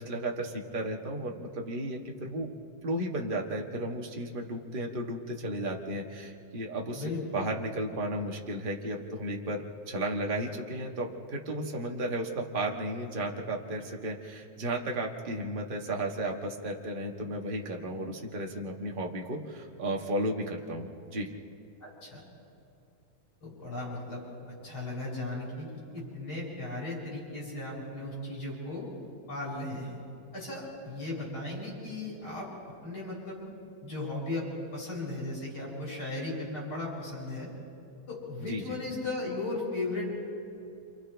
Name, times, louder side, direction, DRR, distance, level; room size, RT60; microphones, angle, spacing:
voice 1, 0.0-2.5 2.8-7.0 7.3-21.3 38.5-38.8, right 1 dB, 40° right, 0 dB, 0.7 m, -34 dB
voice 2, 21.8-22.2 23.4-24.3 24.6-28.9 29.3-30.0 30.3-32.5 32.8-33.5 33.8-34.4 34.7-37.5 38.1-40.1, left 2 dB, 40° left, -5 dB, 7.0 m, -36 dB
28.5 x 28.0 x 3.4 m, 2.6 s
omnidirectional pair, 3.4 m